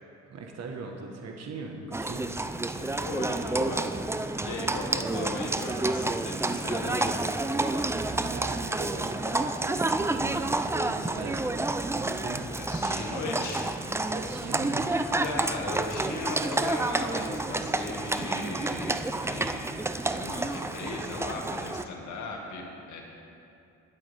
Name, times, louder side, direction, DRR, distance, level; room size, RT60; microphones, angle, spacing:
voice 1, 0.3-2.4 8.3-11.7 12.0-12.5 14.1-15.0, right 3 dB, 55° right, 1 dB, 1.3 m, -40 dB
Livestock farm animals working animals, 1.9-21.8, right 2 dB, 10° right, 0.4 m, -29 dB
voice 2, 2.7-7.2 12.5-14.1 15.2-19.8 20.1-23.0, left 2 dB, 75° left, 0 dB, 2.0 m, -37 dB
20.0 x 8.1 x 3.5 m, 2.6 s
cardioid pair, 90°, 30 cm